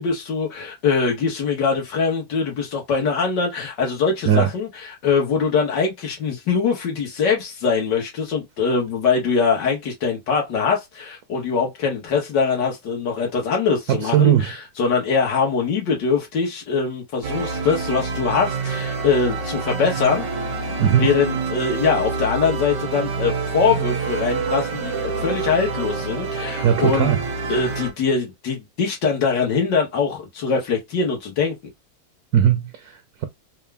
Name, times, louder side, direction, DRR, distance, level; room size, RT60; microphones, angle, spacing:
voice 1, 0.0-20.3 21.0-27.1 27.5-31.6, left 5 dB, 85° left, 2.1 m, -22 dB
voice 2, 13.9-14.6 20.8-21.1 26.6-27.2 32.3-33.2, right 9 dB, 70° right, 1.1 m, -18 dB
sound 1, 17.2-27.9, right 4 dB, 90° right, 1.6 m, -27 dB
4.5 x 2.5 x 3.4 m
omnidirectional pair, 1.8 m